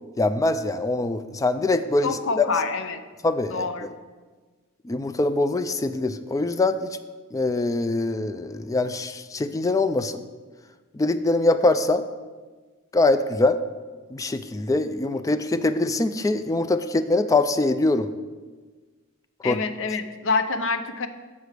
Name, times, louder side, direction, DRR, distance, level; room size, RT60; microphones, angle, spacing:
voice 1, 0.2-2.5 3.2-3.9 4.8-7.0 7.3-10.2 10.9-12.0 12.9-13.6 14.1-18.1 19.4-19.6, left 2 dB, 15° left, 10 dB, 0.3 m, -23 dB
voice 2, 2.0-3.0 3.5-3.9 19.4-21.1, left 4 dB, 65° left, 9 dB, 0.6 m, -26 dB
6.8 x 4.9 x 6.5 m, 1.4 s
head